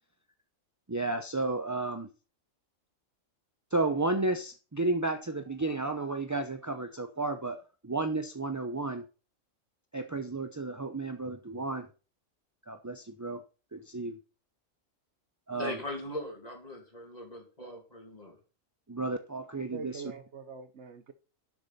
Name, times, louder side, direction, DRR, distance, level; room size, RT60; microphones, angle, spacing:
voice 1, 0.9-2.1 3.7-9.0 9.9-11.9 12.7-13.4 13.7-14.2 15.5-15.8 18.9-20.0, right 2 dB, 20° right, 7 dB, 0.5 m, -32 dB
voice 2, 15.5-18.4, left 1 dB, 30° left, 2 dB, 2.8 m, -40 dB
voice 3, 19.7-21.1, right 5 dB, 60° right, 10 dB, 1.1 m, -43 dB
11.5 x 6.7 x 4.2 m, 0.34 s
omnidirectional pair, 1.4 m